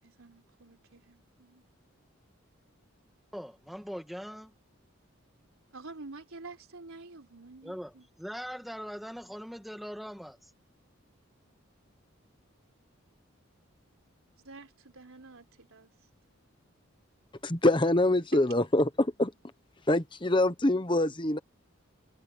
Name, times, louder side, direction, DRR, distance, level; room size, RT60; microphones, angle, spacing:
voice 1, 0.0-1.6 5.7-8.1 14.4-15.9 17.9-18.0 18.3-18.5, right 3 dB, 85° right, 3.9 m, -48 dB
voice 2, 3.3-4.5 7.6-10.5, equal, ahead, 1.9 m, -41 dB
voice 3, 17.4-19.3 19.9-21.4, left 1 dB, 25° left, 1.1 m, -25 dB
head